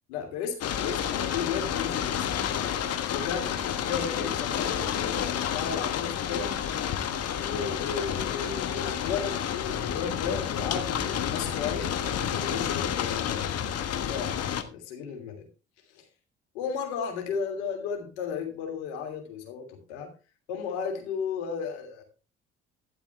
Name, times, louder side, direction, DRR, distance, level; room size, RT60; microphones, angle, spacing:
voice 1, 0.1-2.3 3.1-6.7 7.3-15.4 15.9-16.0 16.5-20.1 20.5-22.0, left 6 dB, 65° left, 4 dB, 3.1 m, -34 dB
sound 1, 0.6-14.6, left 9 dB, 45° left, 1.4 m, -30 dB
12.5 x 11.5 x 3.3 m, 0.32 s
figure-of-eight pair, 50°, 35 cm